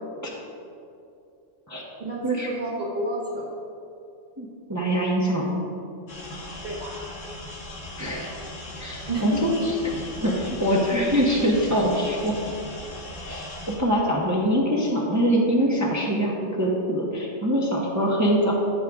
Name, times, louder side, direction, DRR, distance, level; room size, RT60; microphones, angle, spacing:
voice 1, 2.0-3.5 6.4-7.0 9.1-9.7, right 2 dB, 40° right, -8 dB, 1.5 m, -31 dB
voice 2, 4.4-5.5 8.0-8.3 8.8-9.9 10.2-12.4 13.2-18.5, equal, 15° right, -3 dB, 1.0 m, -24 dB
sound 1, 6.1-13.8, left 1 dB, 80° left, 2.1 m, -38 dB
14.5 x 6.5 x 3.6 m, 2.6 s
omnidirectional pair, 1.3 m